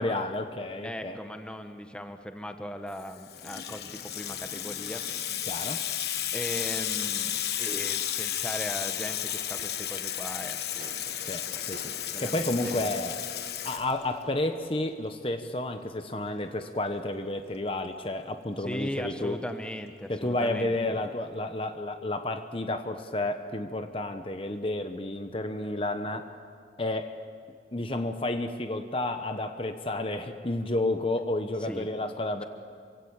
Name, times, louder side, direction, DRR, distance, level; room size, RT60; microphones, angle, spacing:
voice 1, 0.0-1.2 5.4-5.8 11.2-13.2 13.6-19.4 20.1-26.3 26.8-27.1 27.7-32.4, left 2 dB, 30° left, 7 dB, 1.0 m, -31 dB
voice 2, 0.8-5.0 6.3-13.0 18.6-20.7 31.6-31.9, equal, 5° left, 6 dB, 1.3 m, -39 dB
Water tap faucet / Sink (filling or washing), 3.0-14.4, left 10 dB, 65° left, 1.3 m, -33 dB
sound 1, 10.8-11.2 11.7-12.2 12.6-13.1, right 3 dB, 55° right, 2.2 m, -50 dB
27.0 x 24.5 x 8.8 m, 2.1 s
head